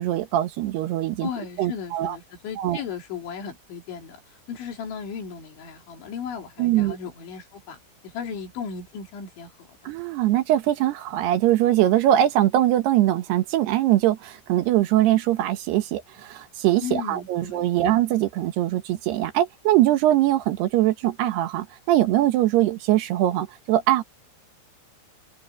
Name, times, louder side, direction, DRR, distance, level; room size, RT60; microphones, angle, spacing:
voice 1, 0.0-1.3 1.6-2.2 2.6-2.8 6.6-7.0 9.9-24.0, right 14 dB, 70° right, 2.9 m, -22 dB
voice 2, 1.2-9.9 16.8-18.0, left 7 dB, 90° left, 5.7 m, -36 dB
omnidirectional pair, 5.2 m